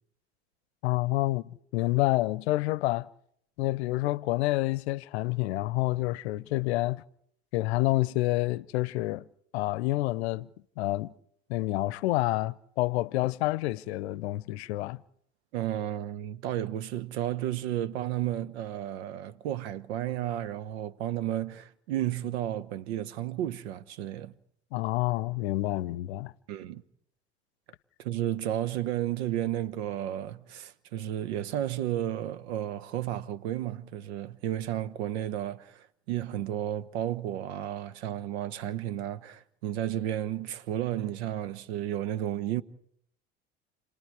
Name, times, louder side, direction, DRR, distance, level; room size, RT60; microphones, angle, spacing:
voice 1, 0.8-3.1 3.6-7.0 7.5-9.2 9.5-10.5 10.8-11.1 11.5-15.0 24.7-26.3, left 18 dB, 70° left, 0.7 m, -28 dB
voice 2, 15.5-24.3 26.5-26.8 28.0-42.6, right 12 dB, 70° right, 1.1 m, -32 dB
29.0 x 19.5 x 4.8 m
hypercardioid pair, 75°, 33 cm